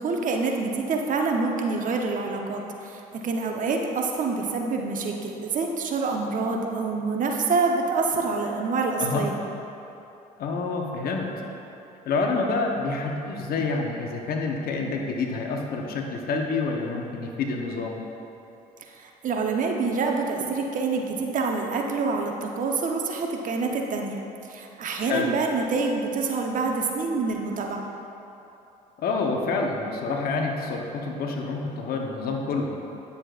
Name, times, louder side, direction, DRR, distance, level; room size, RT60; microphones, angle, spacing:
voice 1, 0.0-9.4 18.9-24.2 24.5-27.9, right 4 dB, 45° right, 2 dB, 0.9 m, -26 dB
voice 2, 10.4-11.3 12.1-18.0 25.0-25.3 29.0-32.7, left 3 dB, 55° left, 1 dB, 1.0 m, -28 dB
9.8 x 6.8 x 2.5 m, 2.9 s
hypercardioid pair, 65°, 18 cm